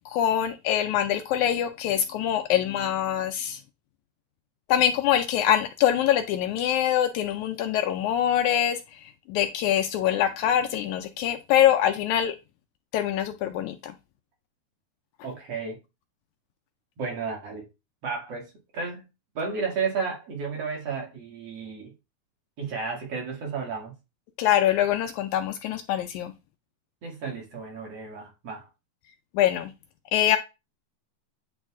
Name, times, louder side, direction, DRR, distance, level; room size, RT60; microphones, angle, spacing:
voice 1, 0.1-3.6 4.7-12.4 12.9-13.9 24.4-26.3 29.4-29.7 30.1-30.4, left 11 dB, 80° left, 1.8 m, -24 dB
voice 2, 15.2-15.8 17.0-17.7 18.0-19.1 19.3-21.9 22.6-23.9 27.0-28.7, right 5 dB, 55° right, 2.4 m, -32 dB
9.0 x 3.2 x 3.5 m
omnidirectional pair, 3.7 m